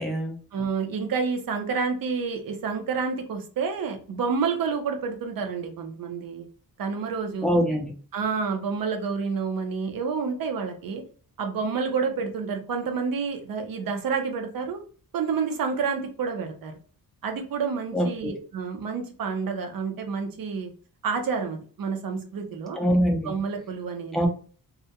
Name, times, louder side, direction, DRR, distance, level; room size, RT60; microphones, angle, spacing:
voice 1, 0.0-0.4 7.4-7.9 17.9-18.4 22.8-23.3 24.1-24.3, equal, ahead, 1 dB, 0.4 m, -24 dB
voice 2, 0.5-6.5 6.8-7.6 8.1-11.0 11.4-14.8 15.1-16.7 17.2-20.7 21.0-22.8 23.2-24.2, right 5 dB, 65° right, 5 dB, 0.6 m, -29 dB
2.4 x 2.1 x 2.8 m, 0.41 s
wide cardioid pair, 155°, 38 cm